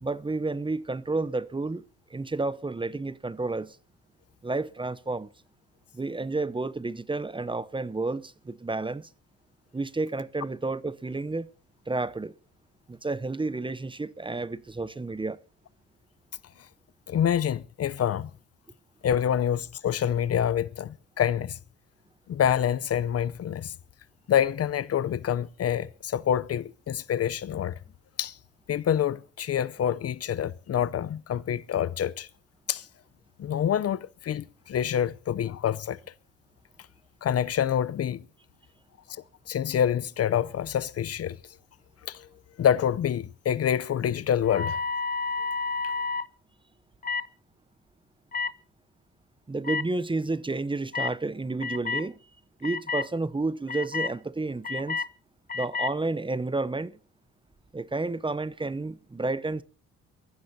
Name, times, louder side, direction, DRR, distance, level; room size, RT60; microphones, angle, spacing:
voice 1, 0.0-1.8 2.1-3.8 4.4-5.3 5.9-9.1 9.7-11.5 11.9-12.3 12.9-15.4 49.5-52.2 52.6-55.0 55.5-57.0 57.7-59.6, right 3 dB, 15° right, 0.8 m, -31 dB
voice 2, 17.1-18.3 19.0-21.6 22.3-23.7 24.3-27.8 28.2-28.4 28.7-32.3 32.7-32.9 33.4-36.0 37.2-38.2 39.1-41.4 42.1-42.3 42.6-44.8, left 9 dB, 50° left, 0.6 m, -27 dB
sound 1, 44.4-46.3 47.0-47.3 48.3-48.5 49.6-49.8 50.9-51.1 51.6-52.1 52.6-53.1 53.7-54.1 54.6-55.1 55.5-55.9, left 4 dB, 30° left, 1.0 m, -30 dB
22.5 x 14.5 x 2.8 m
cardioid pair, 90°, 30 cm